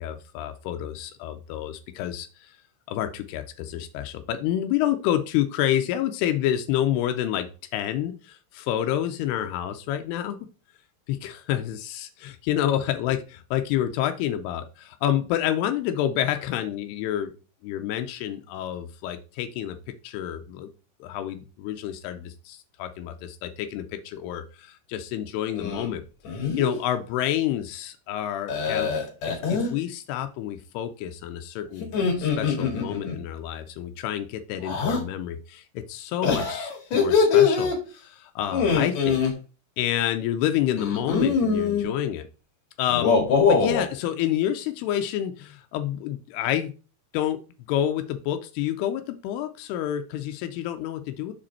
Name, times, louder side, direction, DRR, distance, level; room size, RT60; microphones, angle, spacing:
voice 1, 0.0-2.5 2.9-10.4 11.1-17.3 17.6-19.8 20.0-20.7 21.0-26.0 26.3-28.9 29.3-31.9 32.2-39.2 39.8-42.3 42.8-46.7 47.1-47.4 47.7-51.3, left 11 dB, 90° left, 8 dB, 2.7 m, -28 dB
sound 1, 25.5-25.9 26.3-26.8 28.5-29.7 31.8-33.2 34.6-35.0 36.2-37.8 38.5-39.3 40.8-41.9 42.9-43.9, left 5 dB, 55° left, 2.5 m, -23 dB
6.5 x 5.1 x 4.2 m, 0.35 s
omnidirectional pair, 4.5 m